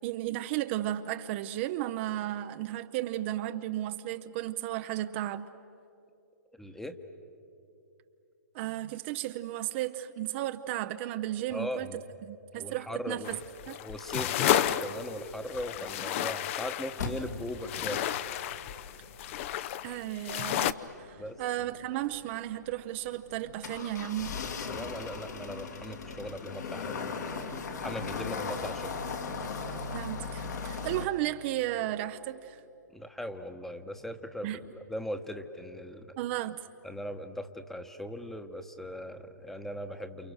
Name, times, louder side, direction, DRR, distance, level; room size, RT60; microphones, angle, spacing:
voice 1, 0.0-5.5 8.5-12.0 12.3-13.4 13.7-13.8 19.8-24.4 29.9-32.6 34.4-34.6 36.2-36.7, right 14 dB, 40° right, 9 dB, 0.7 m, -34 dB
voice 2, 6.6-7.0 11.5-12.0 12.5-13.4 13.8-18.0 21.2-21.4 24.7-27.5 27.8-28.9 32.9-36.1 36.8-40.3, equal, 5° left, 8 dB, 1.1 m, -39 dB
sound 1, 13.2-20.7, left 12 dB, 45° left, 0.8 m, -32 dB
sound 2, 17.0-31.1, left 4 dB, 70° left, 2.6 m, -38 dB
29.0 x 29.0 x 6.4 m, 2.8 s
hypercardioid pair, 130°, 10 cm